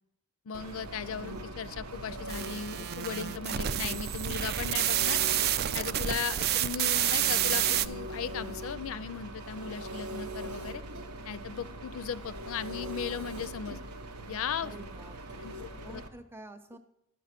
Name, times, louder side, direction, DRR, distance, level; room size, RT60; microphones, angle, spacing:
voice 1, 0.5-5.2 5.7-10.8 11.3-13.8 14.3-14.7 15.4-16.0, left 7 dB, 60° left, 16 dB, 0.4 m, -37 dB
Engine, 0.5-16.1, right 1 dB, 85° right, 0.9 m, -41 dB
sound 1, 2.3-7.9, right 11 dB, 45° right, 0.3 m, -29 dB
voice 2, 14.6-16.8, right 2 dB, 10° right, 7 dB, 0.6 m, -49 dB
12.0 x 6.1 x 5.8 m, 0.80 s
head